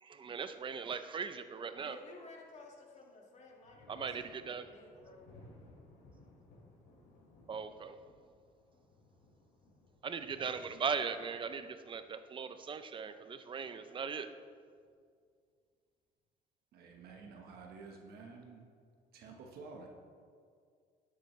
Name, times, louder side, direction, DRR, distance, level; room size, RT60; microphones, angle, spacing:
voice 1, 0.0-2.0 3.9-4.6 7.5-8.0 10.0-14.3, right 6 dB, 30° right, 10 dB, 0.5 m, -39 dB
voice 2, 1.8-5.4, left 3 dB, 45° left, -1 dB, 1.8 m, -55 dB
Thunder, 2.0-2.8 3.1-12.7 14.2-15.0, left 2 dB, 80° left, 2.6 m, -61 dB
voice 3, 16.7-18.7 19.1-19.9, right 4 dB, 65° right, 1 dB, 1.1 m, -51 dB
12.0 x 7.7 x 3.2 m, 2.2 s
cardioid pair, 110°, 17 cm